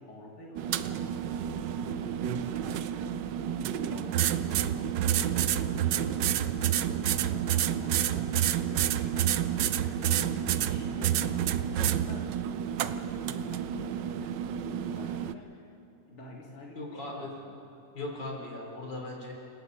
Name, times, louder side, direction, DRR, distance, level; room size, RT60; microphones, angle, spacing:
voice 1, 0.0-3.2 3.6-9.4 9.8-12.4 12.8-15.7 16.1-17.8, left 1 dB, 40° left, -1 dB, 2.6 m, -48 dB
sound 1, 0.6-15.3, right 10 dB, 85° right, 1.4 m, -29 dB
voice 2, 16.7-17.3 17.9-19.3, left 2 dB, 80° left, -1 dB, 4.6 m, -38 dB
29.5 x 18.0 x 5.5 m, 2.9 s
omnidirectional pair, 1.9 m